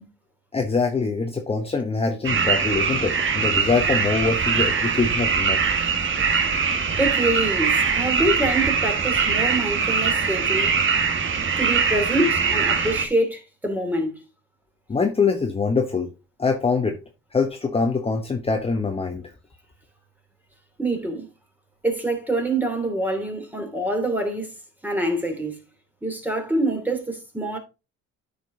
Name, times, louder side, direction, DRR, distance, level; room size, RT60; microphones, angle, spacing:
voice 1, 0.5-5.7 14.9-16.1 16.4-17.0 17.3-19.3, left 4 dB, 20° left, 1.1 m, -24 dB
sound 1, 2.2-13.1, right 5 dB, 45° right, 1.6 m, -22 dB
voice 2, 7.0-10.7 11.6-14.1 20.8-21.3 21.8-24.5 24.8-25.6 26.0-27.6, right 1 dB, 5° right, 3.0 m, -25 dB
9.1 x 5.3 x 3.7 m
supercardioid pair, 85°, 29 cm